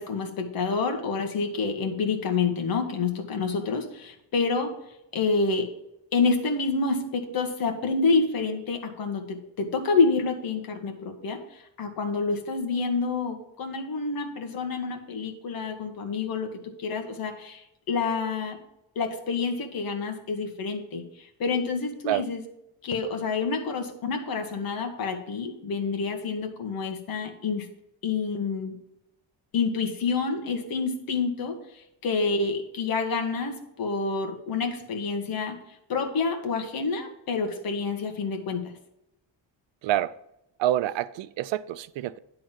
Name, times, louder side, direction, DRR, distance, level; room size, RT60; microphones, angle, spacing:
voice 1, 0.0-4.7 5.1-5.7 6.1-11.4 11.8-17.6 17.9-18.6 18.9-21.0 21.4-22.4 22.8-27.7 28.0-28.7 29.5-31.6 32.0-35.6 35.9-38.6, left 4 dB, 50° left, 1.6 m, -28 dB
voice 2, 39.8-40.2 40.6-42.2, right 13 dB, 80° right, 0.6 m, -27 dB
10.5 x 3.8 x 7.4 m
cardioid pair, 170°, 44 cm